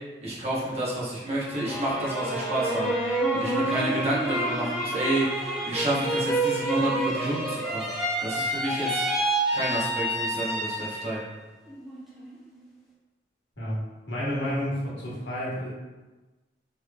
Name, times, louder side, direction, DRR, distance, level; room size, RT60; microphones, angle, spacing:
voice 1, 0.2-7.9 8.2-9.1 9.5-11.2, right 1 dB, 35° right, -7 dB, 1.0 m, -29 dB
sound 1, 1.4-11.2 11.7-12.3, right 1 dB, ahead, 0.6 m, -28 dB
voice 2, 14.1-15.7, equal, 90° left, -7 dB, 1.3 m, -30 dB
3.9 x 3.3 x 2.3 m, 1.2 s
head